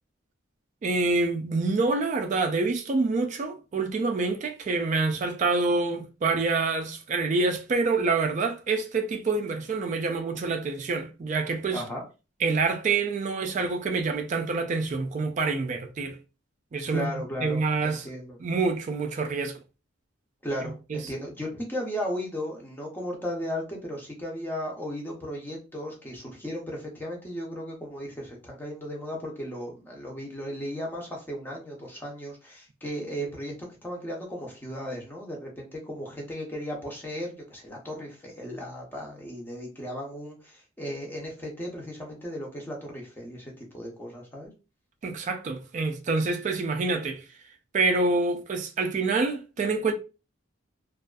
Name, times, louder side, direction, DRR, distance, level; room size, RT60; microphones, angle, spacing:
voice 1, 0.8-11.8 12.4-16.2 16.7-17.1 17.4-18.1 18.4-19.6 20.9-21.0 45.0-47.2 47.7-49.9, right 3 dB, 40° right, 0.3 m, -26 dB
voice 2, 11.7-12.0 16.9-18.4 20.4-33.5 33.8-44.5, equal, 10° left, 0.6 m, -36 dB
2.5 x 2.3 x 2.2 m
head